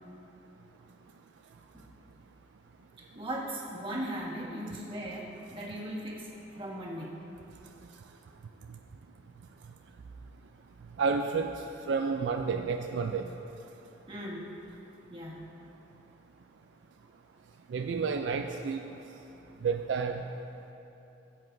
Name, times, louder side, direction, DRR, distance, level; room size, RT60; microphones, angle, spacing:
voice 1, 3.1-7.1 14.1-14.5 15.1-15.4, right 1 dB, 30° right, -5 dB, 1.5 m, -38 dB
voice 2, 11.0-13.3 17.7-18.8 19.6-20.3, right 5 dB, 70° right, 5 dB, 0.4 m, -30 dB
16.0 x 7.8 x 2.6 m, 2.9 s
head